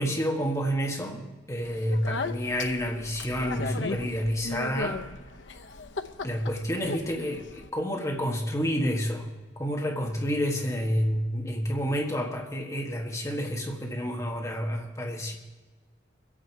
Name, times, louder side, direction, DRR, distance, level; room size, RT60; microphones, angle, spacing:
voice 1, 0.0-5.0 6.2-9.3 9.6-15.3, equal, 15° left, 1 dB, 1.5 m, -29 dB
Speech, 1.7-7.7, left 3 dB, 80° left, 0.8 m, -36 dB
23.5 x 8.7 x 4.6 m, 1.3 s
head